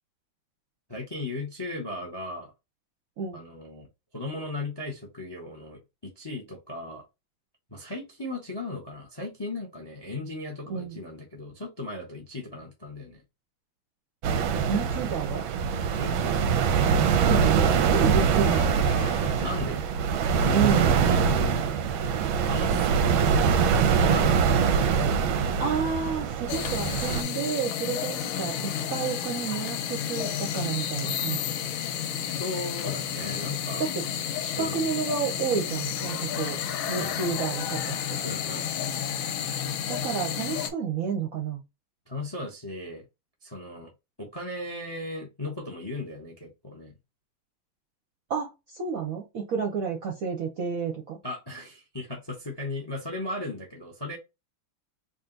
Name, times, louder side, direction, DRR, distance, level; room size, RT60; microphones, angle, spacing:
voice 1, 0.9-2.5 3.3-3.9 4.1-7.0 7.7-13.2 16.0-16.6 19.4-19.8 20.2-21.6 22.4-24.5 32.3-33.9 34.6-34.9 36.9-37.2 38.2-38.7 42.1-43.0 43.4-43.9 44.2-46.9 51.2-54.2, left 2 dB, 25° left, 0.5 m, -36 dB
sound 1, 14.2-27.2, right 6 dB, 90° right, 1.4 m, -23 dB
voice 2, 14.7-15.5 17.2-18.8 20.5-20.9 25.4-31.4 33.8-34.0 34.4-36.6 36.9-37.9 39.9-41.6 48.3-51.2, right 6 dB, 65° right, 0.9 m, -30 dB
sound 2, 18.2-20.1, left 5 dB, 65° left, 0.9 m, -43 dB
sound 3, 26.5-40.7, left 9 dB, 85° left, 1.5 m, -31 dB
3.9 x 2.4 x 3.8 m
omnidirectional pair, 2.2 m